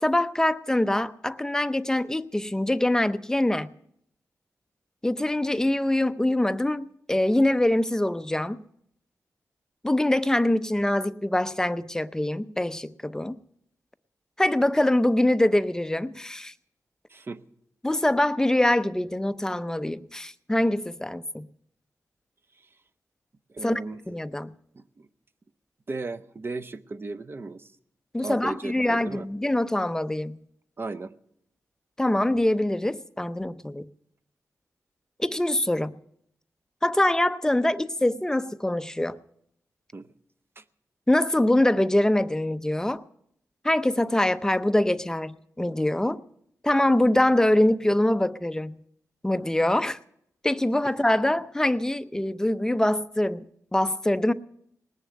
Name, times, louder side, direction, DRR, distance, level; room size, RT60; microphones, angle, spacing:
voice 1, 0.0-3.7 5.0-8.6 9.8-13.4 14.4-16.5 17.8-21.5 23.6-23.8 24.1-24.5 28.1-30.4 32.0-33.9 35.2-36.0 36.8-39.2 41.1-43.0 43.6-46.2 46.6-48.8 49.2-50.0 50.4-54.3, left 1 dB, 10° left, 0.6 m, -24 dB
voice 2, 23.5-24.0 24.7-25.1 25.9-27.7 28.2-29.3 30.8-31.1 39.9-40.1 40.6-40.7, right 3 dB, 40° right, 0.8 m, -36 dB
19.5 x 6.9 x 9.3 m
wide cardioid pair, 85°, 6 cm